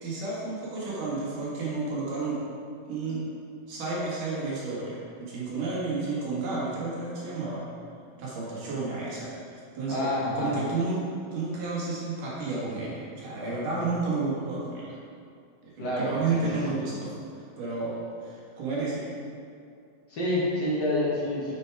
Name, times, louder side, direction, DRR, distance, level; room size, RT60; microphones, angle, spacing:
voice 1, 0.0-2.4 2.9-3.2 3.7-7.7 8.2-10.1 10.4-11.1 11.3-15.0 15.6-17.1 17.6-19.1, right 3 dB, 65° right, -6 dB, 3.1 m, -31 dB
voice 2, 9.9-10.5 15.8-16.8 20.1-21.6, left 1 dB, 65° left, -6 dB, 1.0 m, -28 dB
7.0 x 6.6 x 4.7 m, 2.4 s
omnidirectional pair, 4.0 m